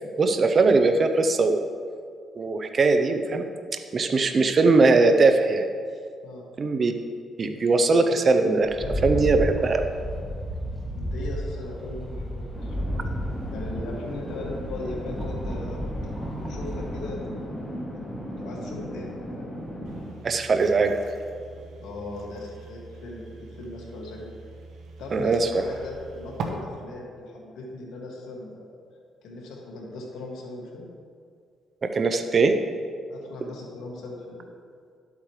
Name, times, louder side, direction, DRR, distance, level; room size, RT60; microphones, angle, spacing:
voice 1, 0.2-1.6 2.4-3.5 3.9-5.6 6.6-6.9 7.4-8.7 9.0-9.9 20.2-20.9 25.1-25.5 31.8-32.5, right 3 dB, 40° right, 6 dB, 0.7 m, -20 dB
Rattle, 8.6-17.1, equal, 10° right, 2.2 m, -32 dB
voice 2, 10.9-13.0 13.5-16.1 16.4-17.5 18.1-19.5 21.8-24.3 25.0-28.7 29.2-30.9 33.1-34.5, left 2 dB, 85° left, -2 dB, 2.1 m, -38 dB
sound 1, 12.5-20.1, equal, 20° left, 2.2 m, -37 dB
sound 2, 19.8-26.4, right 5 dB, 75° right, 1.2 m, -42 dB
12.0 x 8.4 x 3.2 m, 2.2 s
cardioid pair, 90°, 0 cm